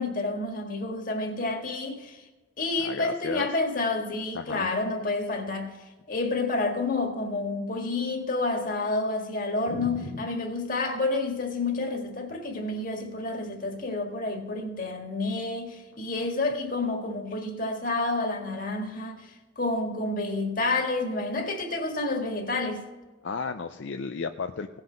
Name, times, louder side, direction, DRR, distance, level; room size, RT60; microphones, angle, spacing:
voice 1, 0.0-2.2 2.6-5.7 6.1-19.3 19.6-22.8, left 2 dB, 45° left, 1.7 m, -29 dB
voice 2, 2.8-3.5 4.3-4.7 9.7-10.3 23.2-24.8, left 4 dB, 70° left, 0.5 m, -33 dB
17.5 x 5.8 x 5.2 m
head